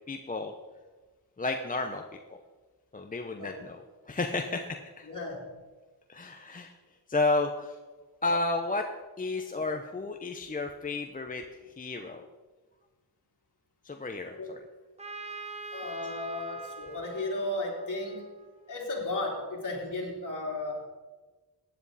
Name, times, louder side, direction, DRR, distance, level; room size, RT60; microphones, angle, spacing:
voice 1, 0.1-0.5 1.4-2.0 2.9-3.8 4.1-5.1 6.1-6.7 7.1-7.8 8.2-8.8 9.2-11.4 11.8-12.3 13.8-14.6, left 3 dB, 20° left, 4 dB, 0.8 m, -32 dB
voice 2, 5.1-5.5 14.4-14.5 15.7-18.2 18.7-20.9, left 2 dB, 50° left, -2 dB, 3.5 m, -34 dB
Trumpet, 15.0-18.7, right 3 dB, 15° right, 1.2 m, -43 dB
15.5 x 9.9 x 4.1 m, 1.3 s
wide cardioid pair, 105°, 40 cm